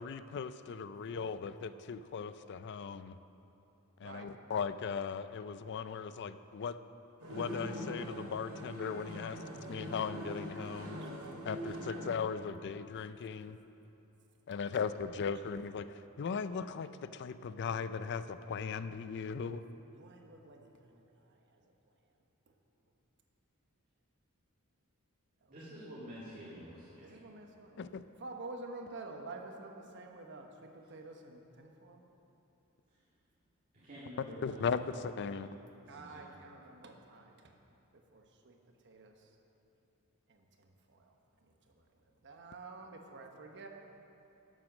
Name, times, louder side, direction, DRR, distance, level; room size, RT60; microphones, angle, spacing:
voice 1, 0.0-3.2 4.0-6.8 7.3-11.0 11.4-13.6 14.5-19.6 27.8-28.0 34.4-35.5, left 6 dB, 50° left, 13 dB, 0.4 m, -38 dB
sound 1, 7.2-12.2, equal, 90° right, 2.3 m, -42 dB
voice 2, 19.9-21.7 22.5-22.6 25.4-25.5 27.0-27.8 28.2-32.0 35.9-37.6 37.9-38.6 38.8-39.3 40.3-41.2 41.4-43.7, right 3 dB, 55° right, 3 dB, 1.1 m, -50 dB
voice 3, 25.5-27.0 33.7-35.0 35.8-36.2, equal, 40° right, -8 dB, 1.9 m, -48 dB
11.5 x 7.6 x 6.3 m, 2.9 s
head